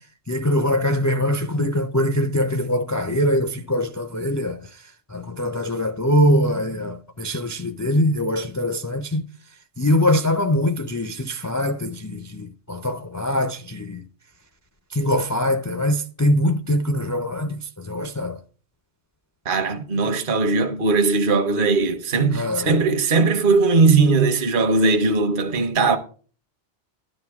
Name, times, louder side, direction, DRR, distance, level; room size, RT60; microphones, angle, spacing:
voice 1, 0.3-4.6 5.1-9.2 9.8-14.0 14.9-17.6 17.9-18.4 22.3-22.7, left 1 dB, 25° left, 0.4 m, -22 dB
voice 2, 19.4-26.0, right 3 dB, 50° right, 1.1 m, -19 dB
12.5 x 11.0 x 3.5 m
omnidirectional pair, 1.2 m